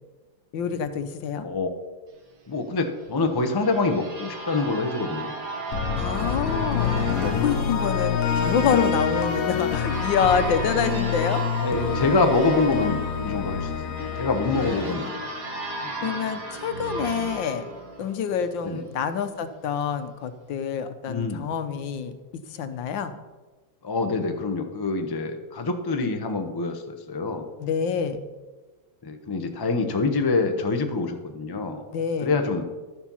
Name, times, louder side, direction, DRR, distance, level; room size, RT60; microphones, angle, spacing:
voice 1, 0.5-1.5 6.0-11.4 14.6-15.2 16.0-17.6 18.0-23.1 27.6-28.2 31.9-32.3, left 6 dB, 80° left, 10 dB, 1.5 m, -27 dB
voice 2, 2.5-5.3 8.0-8.1 11.6-15.1 15.8-16.1 18.6-18.8 21.1-21.5 23.8-27.4 29.0-31.8 32.2-32.7, left 3 dB, 35° left, 5 dB, 0.3 m, -26 dB
sound 1, 3.0-18.7, right 2 dB, 50° right, 1.7 m, -36 dB
sound 2, 5.7-15.9, left 7 dB, 55° left, 1.1 m, -27 dB
12.0 x 7.4 x 5.5 m, 1.3 s
omnidirectional pair, 2.1 m